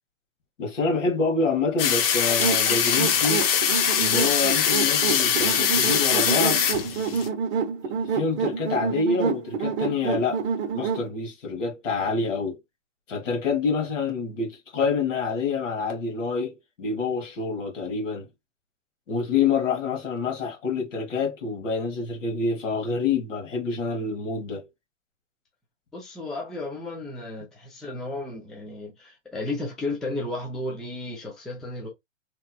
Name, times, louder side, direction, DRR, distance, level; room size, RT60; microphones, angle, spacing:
voice 1, 0.6-3.4 4.0-6.6 7.9-10.4 10.7-12.6 13.1-18.3 19.1-24.7, left 4 dB, 75° left, 1.4 m, -27 dB
sound 1, 1.8-7.3, left 8 dB, 45° left, 0.8 m, -22 dB
sound 2, 2.4-11.1, right 6 dB, 60° right, 0.9 m, -28 dB
voice 2, 25.9-31.9, left 2 dB, ahead, 0.3 m, -33 dB
3.0 x 2.9 x 2.2 m
hypercardioid pair, 110°, 38 cm